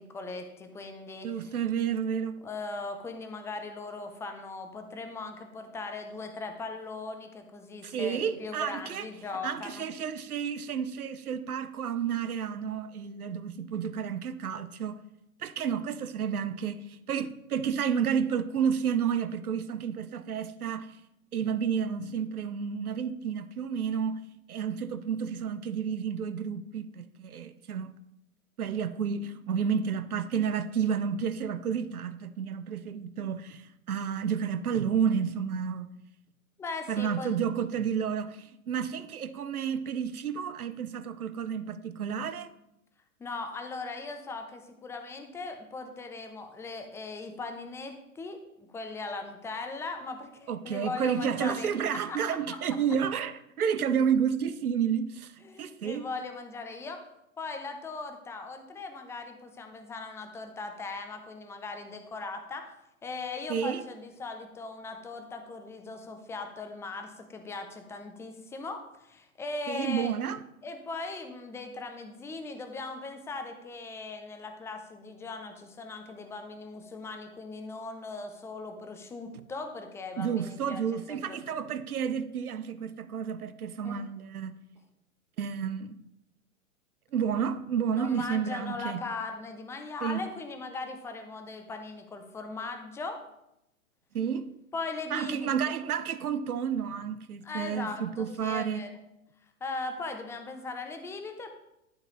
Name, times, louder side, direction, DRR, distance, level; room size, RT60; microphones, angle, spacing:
voice 1, 0.0-1.5 2.4-9.9 36.6-37.4 43.2-52.2 52.5-52.6 55.4-57.0 57.4-62.7 63.0-70.1 70.6-80.8 81.1-81.4 83.8-84.0 88.0-93.2 94.7-95.7 97.4-98.9 99.6-101.5, left 3 dB, 5° left, 0.6 m, -39 dB
voice 2, 1.2-2.4 7.8-9.1 9.4-15.0 15.4-20.9 21.3-24.2 24.5-27.9 28.6-35.9 36.9-42.5 50.5-55.3 55.6-56.0 63.5-63.8 69.7-70.4 80.2-84.5 85.4-86.0 87.1-89.0 90.0-90.2 94.1-94.5 95.1-98.8, right 7 dB, 90° right, 0.7 m, -31 dB
11.5 x 4.1 x 3.9 m
hypercardioid pair, 115°, 43 cm